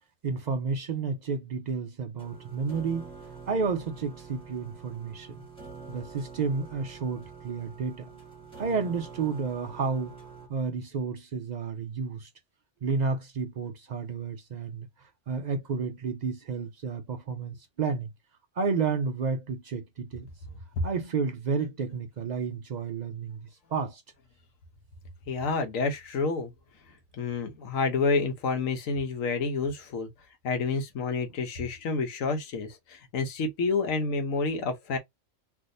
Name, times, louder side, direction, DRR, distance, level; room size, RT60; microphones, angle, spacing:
voice 1, 0.2-3.1 3.5-5.4 5.9-8.1 8.6-10.2 10.5-12.3 12.8-18.1 18.6-20.3 20.8-24.0, right 5 dB, 75° right, 0.4 m, -31 dB
sound 1, 2.2-10.5, right 5 dB, 5° left, 1.3 m, -46 dB
voice 2, 25.3-26.5 27.2-30.1 30.4-35.0, left 4 dB, 85° left, 1.2 m, -29 dB
3.4 x 2.5 x 2.6 m
omnidirectional pair, 1.3 m